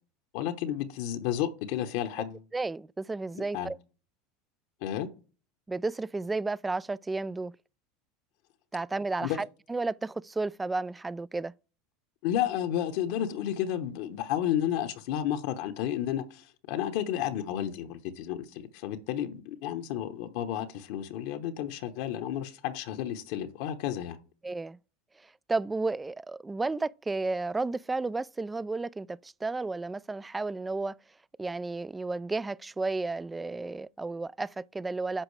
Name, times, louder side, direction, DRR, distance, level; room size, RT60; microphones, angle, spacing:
voice 1, 0.3-2.4 3.5-3.7 4.8-5.1 9.2-9.4 12.2-24.2, left 11 dB, 65° left, 0.9 m, -32 dB
voice 2, 2.5-3.8 5.7-7.5 8.7-11.5 24.4-24.8 25.5-31.0 31.4-35.2, right 3 dB, 15° right, 0.3 m, -32 dB
9.9 x 6.2 x 3.2 m
hypercardioid pair, 90°, 0 cm